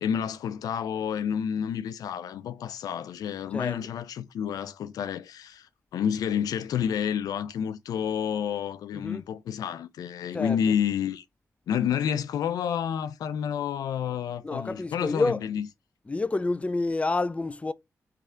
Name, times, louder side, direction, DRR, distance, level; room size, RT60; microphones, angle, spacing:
voice 1, 0.0-11.2 11.7-15.7, left 8 dB, 90° left, 0.4 m, -29 dB
voice 2, 8.9-9.2 10.3-10.6 14.4-15.5 16.1-17.7, left 3 dB, 20° left, 0.4 m, -28 dB
3.6 x 3.3 x 4.3 m
cardioid pair, 55°, 6 cm